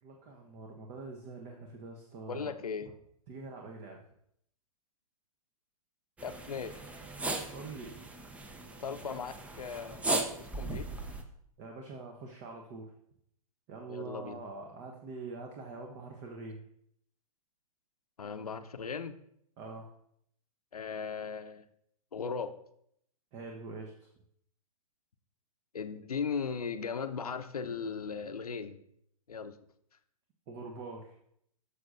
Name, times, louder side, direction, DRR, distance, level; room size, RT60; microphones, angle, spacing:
voice 1, 0.0-2.5 3.3-4.0 7.5-8.0 11.6-12.9 13.7-16.6 19.6-19.9 23.3-23.9 30.5-31.2, right 3 dB, 30° right, 2 dB, 0.9 m, -44 dB
voice 2, 2.3-2.9 6.2-6.7 8.8-10.9 13.9-14.4 18.2-19.2 20.7-21.6 22.1-22.6 25.7-28.8 29.3-29.5, left 5 dB, 75° left, 10 dB, 0.7 m, -37 dB
sound 1, 6.2-11.2, right 2 dB, 5° right, 0.5 m, -37 dB
12.5 x 6.6 x 2.5 m, 0.71 s
figure-of-eight pair, 115°, 19 cm